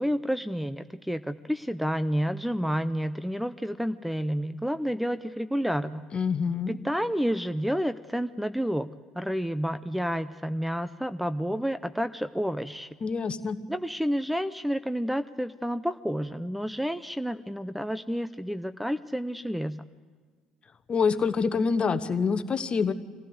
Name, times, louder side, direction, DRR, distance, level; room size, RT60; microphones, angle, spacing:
voice 1, 0.0-6.0 6.7-8.9 9.2-12.9 13.7-19.8, equal, ahead, 12 dB, 0.6 m, -30 dB
voice 2, 6.1-6.8 13.0-13.6 20.9-22.9, left 5 dB, 35° left, 12 dB, 1.1 m, -26 dB
24.5 x 16.0 x 8.0 m, 1.5 s
hypercardioid pair, 60°, 3 cm